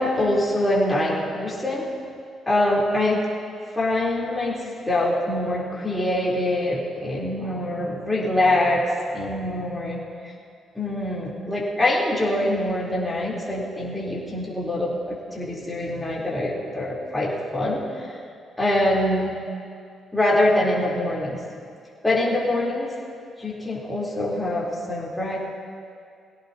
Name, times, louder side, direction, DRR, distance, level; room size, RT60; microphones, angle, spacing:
voice 1, 0.0-1.9 2.5-3.2 3.7-4.6 4.8-10.3 10.7-18.2 18.6-19.3 20.1-21.4 22.0-22.9 23.4-25.4, left 1 dB, 10° left, -6 dB, 3.9 m, -24 dB
21.5 x 17.0 x 3.0 m, 2.3 s
cardioid pair, 90°, 0 cm